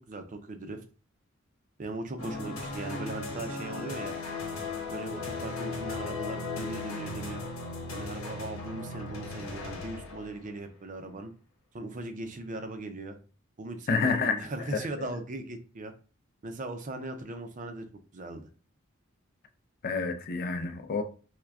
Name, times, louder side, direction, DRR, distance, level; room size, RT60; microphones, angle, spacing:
voice 1, 0.1-0.8 1.8-4.2 4.9-7.4 7.9-11.3 11.7-13.2 13.6-15.9 16.4-17.9 18.1-18.5, right 2 dB, 40° right, 0.5 m, -39 dB
sound 1, 2.2-10.5, left 3 dB, 80° left, 1.1 m, -37 dB
voice 2, 13.9-14.5 15.0-15.1 19.8-21.0, left 4 dB, 45° left, 0.4 m, -28 dB
5.8 x 2.2 x 2.4 m
head